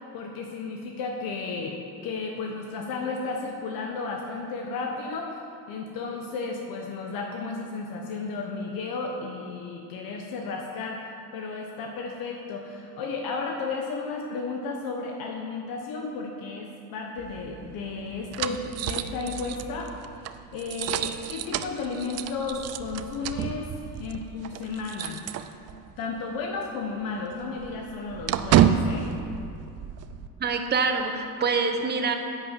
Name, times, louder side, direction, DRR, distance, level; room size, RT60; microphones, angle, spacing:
voice 1, 0.1-5.4 5.7-11.0 11.3-19.9 20.5-25.2 26.0-29.1, left 4 dB, 60° left, 1 dB, 1.3 m, -33 dB
sound 1, 17.2-26.0 26.3-26.5 26.8-30.3, right 9 dB, 40° right, 0.5 m, -29 dB
voice 2, 30.4-32.1, right 4 dB, 25° right, 5 dB, 1.1 m, -25 dB
11.0 x 8.4 x 7.5 m, 2.5 s
cardioid pair, 155°, 38 cm